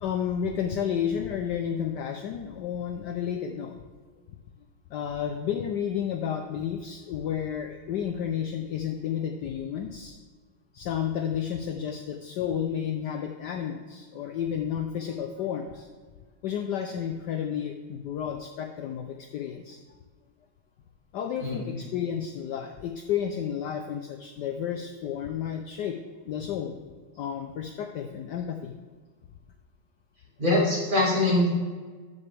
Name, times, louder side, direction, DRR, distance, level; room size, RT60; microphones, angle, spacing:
voice 1, 0.0-3.8 4.9-10.2 10.7-15.9 16.4-19.8 21.1-26.0 26.3-28.7, left 8 dB, 70° left, 5 dB, 1.0 m, -31 dB
voice 2, 21.4-21.8 30.4-31.5, left 1 dB, 25° right, -4 dB, 2.3 m, -23 dB
13.5 x 7.1 x 3.4 m, 1.5 s
omnidirectional pair, 2.2 m